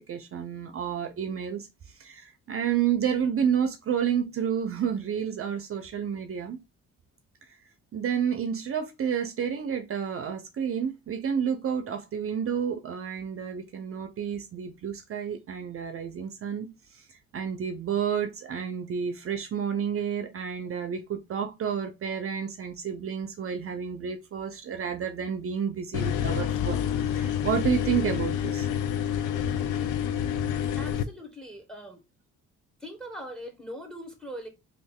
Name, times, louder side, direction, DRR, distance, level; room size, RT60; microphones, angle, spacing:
voice 1, 0.1-1.7 2.0-6.6 7.9-26.8 27.1-28.7, right 8 dB, 45° right, 0.6 m, -30 dB
sound 1, 25.9-31.0, left 9 dB, 90° left, 0.5 m, -28 dB
voice 2, 30.8-32.0 32.8-34.5, equal, ahead, 1.2 m, -41 dB
3.1 x 2.6 x 3.5 m
cardioid pair, 90°, 30 cm